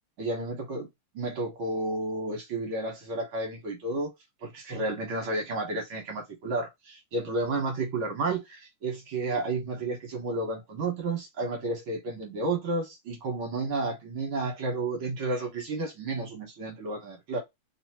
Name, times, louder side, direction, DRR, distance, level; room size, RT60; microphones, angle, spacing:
voice 1, 0.2-0.9 1.2-4.1 4.4-17.4, right 2 dB, 55° right, 1.6 m, -31 dB
4.3 x 2.9 x 2.8 m
omnidirectional pair, 3.4 m